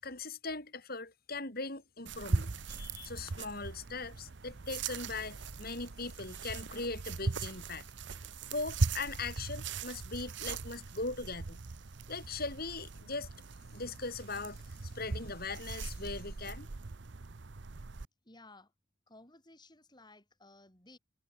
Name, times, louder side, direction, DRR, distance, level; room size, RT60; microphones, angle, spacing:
voice 1, 0.0-7.9 8.5-11.6 12.1-13.3 13.7-16.7, left 3 dB, 50° left, 7.7 m, -40 dB
sound 1, 2.1-18.1, right 3 dB, 65° right, 0.8 m, -39 dB
voice 2, 18.2-18.7 19.1-21.0, left 2 dB, 20° left, 6.5 m, -57 dB
head